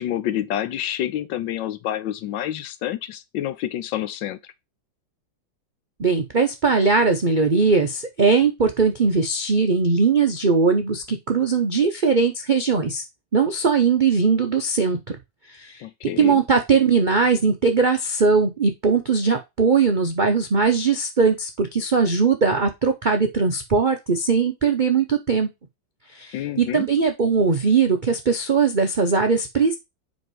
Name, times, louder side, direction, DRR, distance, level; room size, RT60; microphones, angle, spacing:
voice 1, 0.0-4.5 15.8-16.4 26.3-26.9, left 12 dB, 80° left, 1.4 m, -28 dB
voice 2, 6.0-13.0 13.3-15.0 15.6-15.8 16.2-25.5 26.1-29.8, right 5 dB, 65° right, 0.4 m, -20 dB
5.5 x 5.1 x 4.6 m
omnidirectional pair, 2.1 m